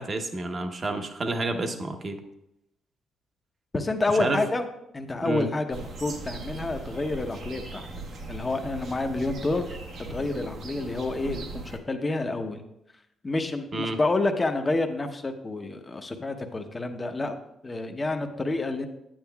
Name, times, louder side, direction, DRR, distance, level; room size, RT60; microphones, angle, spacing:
voice 1, 0.0-2.2 4.1-4.4 5.2-5.5 13.7-14.0, right 2 dB, 35° right, 5 dB, 0.9 m, -29 dB
voice 2, 3.7-4.7 4.9-7.9 8.3-12.6 13.2-17.4 17.6-18.9, left 2 dB, 25° left, 6 dB, 0.8 m, -29 dB
sound 1, 5.7-11.8, right 3 dB, 70° right, 1.1 m, -39 dB
9.1 x 8.8 x 2.3 m, 0.81 s
cardioid pair, 90°, 0 cm